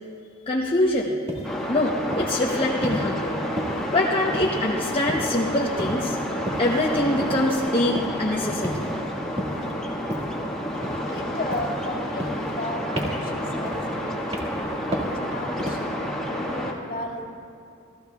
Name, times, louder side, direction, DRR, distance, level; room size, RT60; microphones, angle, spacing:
voice 1, 0.5-1.1 1.7-3.4 3.7-6.2 6.6-8.9, left 1 dB, 25° left, -3 dB, 0.8 m, -24 dB
sound 1, 1.3-1.5 2.1-2.4 2.8-3.1 3.6-4.0 4.3-4.8 5.1-5.4 5.8-6.1 6.5-6.7 7.2-7.5 7.9-8.2 8.6-9.0 9.4-9.7 10.1-10.4 10.8-11.2 11.5-11.8 12.2-12.7 13.0-13.3 13.6-14.0 14.3-14.6 14.9-15.2 15.6-15.9, equal, 30° right, 1.9 m, -32 dB
sound 2, 1.4-16.7, equal, 5° left, 1.5 m, -30 dB
voice 2, 11.1-15.9 16.3-17.3, left 1 dB, 45° left, 0 dB, 2.0 m, -35 dB
28.0 x 15.5 x 2.3 m, 2.6 s
head